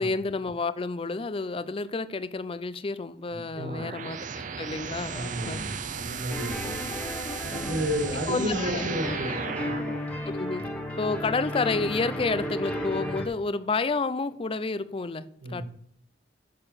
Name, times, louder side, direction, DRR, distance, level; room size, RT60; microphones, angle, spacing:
voice 1, 0.0-5.7 8.3-8.9 10.3-10.7 11.0-15.6, left 3 dB, 30° left, 0.5 m, -30 dB
voice 2, 3.3-3.8 5.1-6.7 7.4-9.8 15.4-15.6, equal, 80° right, 2.5 m, -32 dB
sound 1, 3.6-10.0, right 6 dB, 45° right, 0.6 m, -35 dB
sound 2, 6.3-13.3, left 1 dB, 5° left, 1.4 m, -34 dB
6.8 x 6.6 x 6.9 m
head